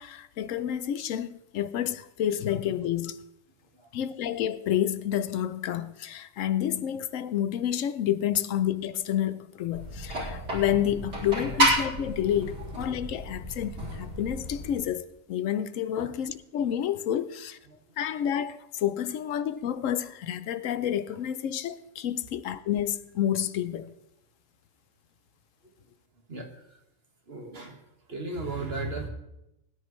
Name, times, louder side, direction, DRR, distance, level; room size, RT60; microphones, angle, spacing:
voice 1, 0.0-3.2 3.9-17.6 18.0-23.9, left 10 dB, 90° left, 1.1 m, -29 dB
sound 1, 9.7-14.7, equal, 70° right, 4.4 m, -30 dB
voice 2, 26.3-26.8 27.3-27.8 28.1-29.1, right 3 dB, 50° right, 1.9 m, -36 dB
21.0 x 10.0 x 3.2 m
omnidirectional pair, 1.3 m